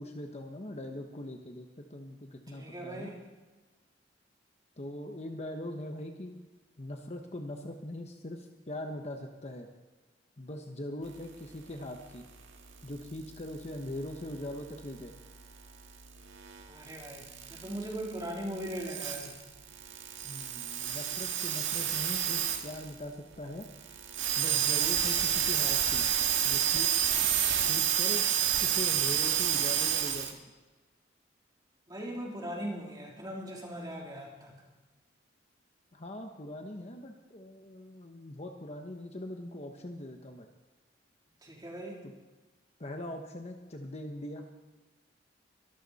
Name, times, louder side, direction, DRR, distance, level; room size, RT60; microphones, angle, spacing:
voice 1, 0.0-3.1 4.8-6.4 6.8-9.7 10.4-12.2 12.8-15.1 20.2-23.7 24.4-26.0 26.4-26.9 27.7-30.4 35.9-40.5 42.0-42.1 42.8-44.5, left 1 dB, 35° left, 4 dB, 1.1 m, -41 dB
voice 2, 2.5-3.2 16.7-19.4 31.9-34.5 41.4-42.0, right 1 dB, 20° right, -2 dB, 3.4 m, -39 dB
sound 1, 12.7-23.0 23.3-23.4 23.6-30.3, right 9 dB, 85° right, 1.8 m, -30 dB
23.5 x 13.0 x 4.2 m, 1.2 s
head